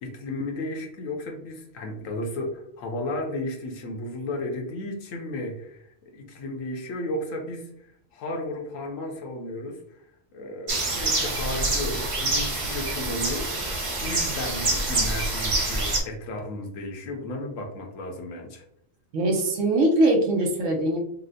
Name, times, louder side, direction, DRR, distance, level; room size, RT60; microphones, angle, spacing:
voice 1, 0.0-7.7 8.1-9.8 10.3-13.7 14.0-18.6, left 1 dB, 75° left, 2 dB, 1.1 m, -34 dB
sound 1, 10.7-16.0, right 2 dB, 50° right, 0.4 m, -26 dB
voice 2, 19.1-21.0, right 1 dB, 70° right, 1 dB, 1.0 m, -22 dB
4.1 x 2.1 x 2.6 m, 0.72 s
omnidirectional pair, 1.4 m